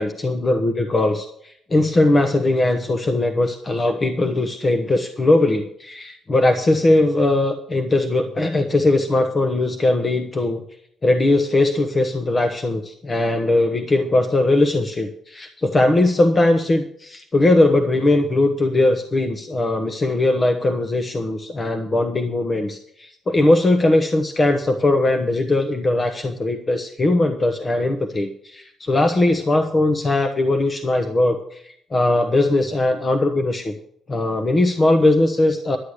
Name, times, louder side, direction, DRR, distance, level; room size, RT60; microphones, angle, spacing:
voice 1, 0.0-10.6 11.0-33.7 34.1-35.8, left 2 dB, 35° left, 6 dB, 1.0 m, -19 dB
11.5 x 8.4 x 6.5 m, 0.71 s
cardioid pair, 90°, 0 cm